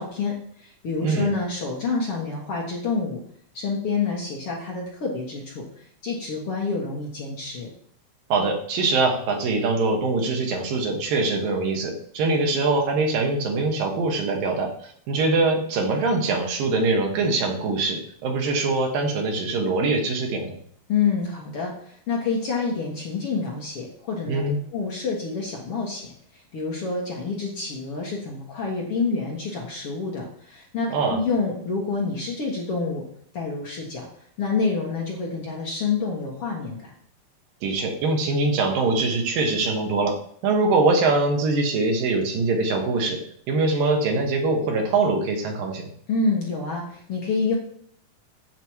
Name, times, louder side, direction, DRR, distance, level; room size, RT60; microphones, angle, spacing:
voice 1, 0.0-3.2 3.5-7.7 20.9-24.4 24.7-33.0 33.3-34.1 34.4-36.9 46.1-47.5, left 4 dB, 50° left, -2 dB, 1.9 m, -28 dB
voice 2, 8.3-20.5 24.3-24.6 30.9-31.2 37.6-40.1 40.4-43.2 43.5-45.9, right 3 dB, 75° right, 2 dB, 3.1 m, -23 dB
8.0 x 7.6 x 4.7 m, 0.63 s
omnidirectional pair, 4.2 m